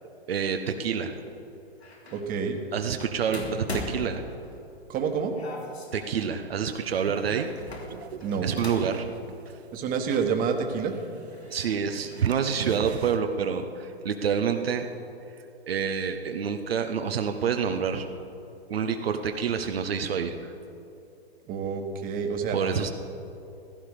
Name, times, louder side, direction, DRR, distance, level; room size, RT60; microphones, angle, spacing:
voice 1, 0.3-1.1 2.7-4.2 5.9-7.5 8.4-9.1 11.5-14.9 15.7-18.1 18.7-20.4 22.5-22.9, right 7 dB, 65° right, 5 dB, 1.1 m, -27 dB
sound 1, 1.8-2.3 3.3-4.8 5.3-6.2 7.5-9.0 9.3-9.4 10.7-10.8 11.3-12.3 12.6-13.2, left 2 dB, 90° left, 2.9 m, -40 dB
voice 2, 2.1-2.6 4.9-5.3 8.2-8.6 9.7-10.9 21.5-22.6, right 6 dB, 25° right, 4 dB, 1.6 m, -28 dB
sound 2, 6.7-13.2, right 8 dB, 85° right, 0.5 m, -37 dB
16.0 x 14.5 x 5.0 m, 2.7 s
figure-of-eight pair, 115°, 32 cm